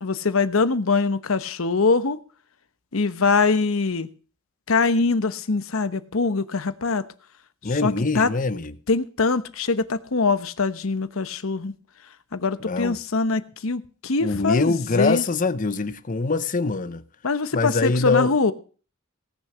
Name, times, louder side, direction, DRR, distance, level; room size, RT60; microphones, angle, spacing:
voice 1, 0.0-2.2 2.9-4.1 4.7-7.0 7.8-8.3 8.9-11.7 12.3-15.2 17.2-18.5, left 4 dB, 80° left, 0.9 m, -23 dB
voice 2, 7.6-8.8 12.6-13.0 14.2-17.0 17.5-18.3, left 3 dB, 40° left, 0.7 m, -23 dB
17.5 x 6.7 x 6.1 m
head